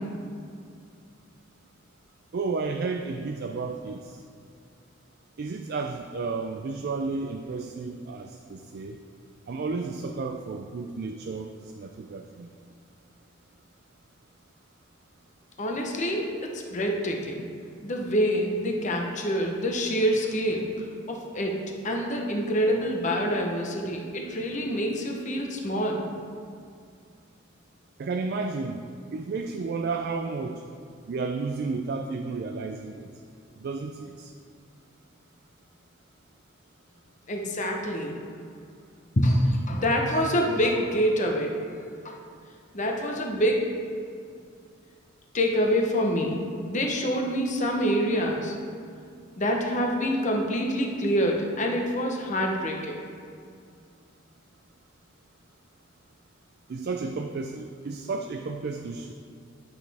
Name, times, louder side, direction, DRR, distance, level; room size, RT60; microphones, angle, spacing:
voice 1, 2.3-4.2 5.4-9.0 9.5-12.5 28.0-28.8 29.1-30.6 31.1-33.1 33.6-34.3 56.7-59.1, right 4 dB, 55° right, 4 dB, 0.4 m, -32 dB
voice 2, 15.6-16.4 16.7-17.4 17.8-20.7 21.1-26.0 37.3-38.2 39.2-41.6 42.0-42.1 42.7-43.6 45.3-46.4 46.7-48.5 49.4-53.0, equal, 40° left, 1 dB, 0.9 m, -26 dB
9.7 x 6.1 x 3.5 m, 2.3 s
head